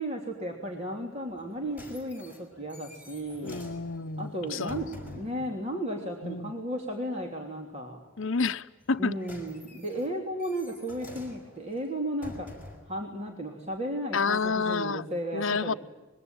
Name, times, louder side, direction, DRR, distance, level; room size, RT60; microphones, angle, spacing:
voice 1, 0.0-3.6 4.2-8.0 9.0-12.5 12.9-15.8, right 1 dB, 30° right, 3.2 m, -34 dB
sound 1, 1.4-5.4 8.8-13.0 13.7-13.8, left 1 dB, 10° right, 6.0 m, -48 dB
voice 2, 3.4-4.9 6.2-6.5 8.2-9.1 14.1-15.1 15.3-15.7, left 4 dB, 65° left, 0.8 m, -29 dB
26.0 x 22.5 x 9.0 m
head